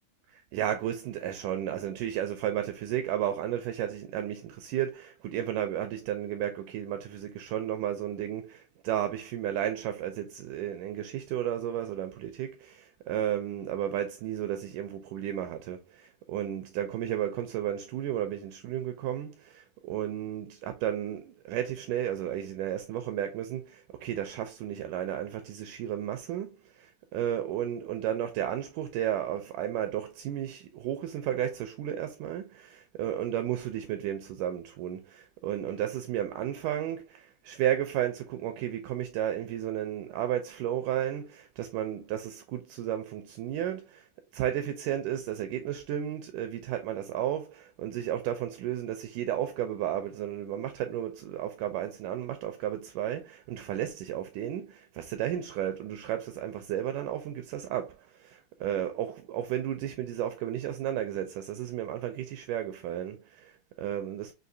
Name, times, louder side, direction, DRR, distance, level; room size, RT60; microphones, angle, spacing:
voice 1, 0.5-44.1 44.3-64.3, right 11 dB, 85° right, 1.8 m, -33 dB
6.6 x 2.6 x 2.6 m
omnidirectional pair, 4.1 m